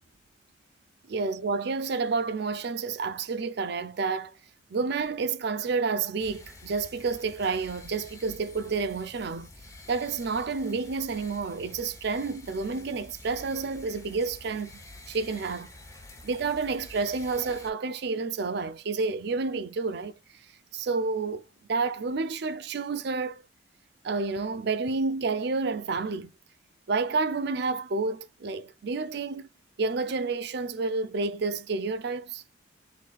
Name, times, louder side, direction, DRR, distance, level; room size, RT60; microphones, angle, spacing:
voice 1, 1.1-4.3 4.7-9.5 9.9-14.8 15.1-15.7 16.2-20.2 20.7-23.4 24.0-26.3 26.9-29.5 29.8-32.4, right 4 dB, 60° right, 0.5 m, -30 dB
sound 1, 6.2-17.7, left 2 dB, 20° left, 0.8 m, -49 dB
3.9 x 2.7 x 4.0 m
head